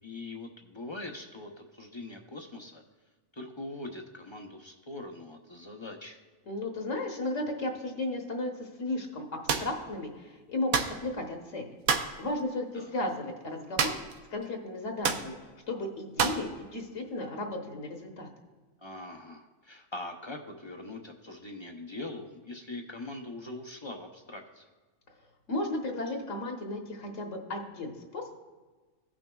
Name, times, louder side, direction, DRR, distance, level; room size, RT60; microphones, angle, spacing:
voice 1, 0.0-2.8 3.3-6.2 12.7-13.1 18.8-24.7, left 2 dB, 40° left, 3 dB, 0.4 m, -42 dB
voice 2, 6.5-11.7 12.2-13.9 14.3-15.3 15.7-18.3 25.5-28.3, left 2 dB, 65° left, 2 dB, 1.3 m, -34 dB
sound 1, 9.5-9.7 10.7-11.0 11.9-12.2 13.8-14.2 14.4-14.5 15.0-15.3 16.2-16.5, right 6 dB, 80° right, 1.1 m, -28 dB
17.0 x 6.0 x 2.3 m, 1.3 s
omnidirectional pair, 1.5 m